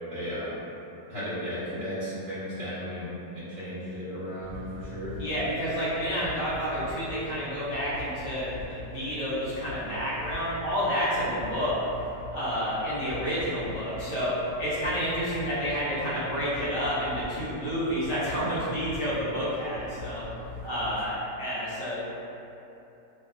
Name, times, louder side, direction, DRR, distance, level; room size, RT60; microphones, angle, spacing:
voice 1, 0.1-0.5 1.1-5.1, equal, 70° right, -15 dB, 1.5 m, -35 dB
sound 1, 4.4-21.0, left 2 dB, 45° right, 1.1 m, -43 dB
voice 2, 5.2-11.9 12.3-20.2 20.6-22.0, equal, 70° left, -10 dB, 1.4 m, -29 dB
3.5 x 2.3 x 2.3 m, 2.9 s
omnidirectional pair, 1.9 m